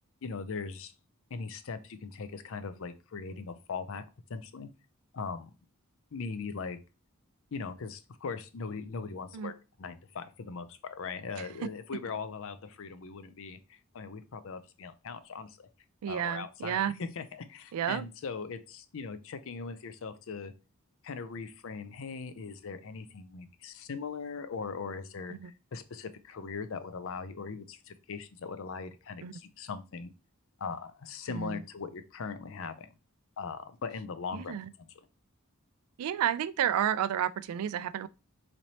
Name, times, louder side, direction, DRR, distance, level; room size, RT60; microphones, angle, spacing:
voice 1, 0.2-0.9 1.3-4.0 4.3-4.7 5.1-5.5 6.1-6.8 7.5-15.7 16.1-20.5 21.0-30.1 30.6-32.9 33.4-34.6, left 5 dB, 65° left, 0.5 m, -40 dB
voice 2, 16.0-17.0 17.7-18.0 25.3-25.5 29.2-29.4 31.3-31.6 34.3-34.7 36.0-38.1, right 10 dB, 85° right, 0.3 m, -31 dB
4.0 x 3.2 x 2.8 m
head